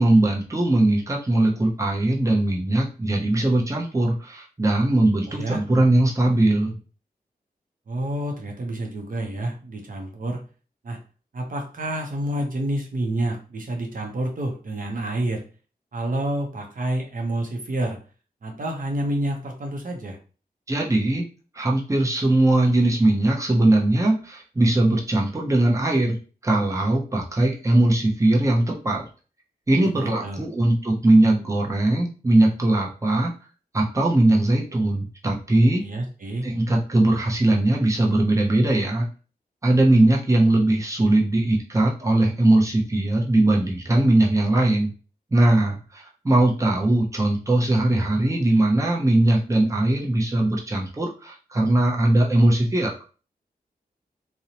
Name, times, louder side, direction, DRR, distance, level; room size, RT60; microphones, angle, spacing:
voice 1, 0.0-6.8 20.7-21.2 21.6-26.2 26.4-29.0 29.7-33.3 33.7-35.8 36.4-39.1 39.6-44.9 45.3-52.9, right 1 dB, 20° right, -1 dB, 0.7 m, -20 dB
voice 2, 5.3-5.6 7.9-10.4 10.8-11.0 11.3-15.4 15.9-18.0 18.4-20.2 29.9-30.4 35.8-36.5, right 1 dB, 60° right, 2 dB, 0.6 m, -28 dB
2.6 x 2.0 x 2.8 m, 0.36 s
cardioid pair, 60°, 16 cm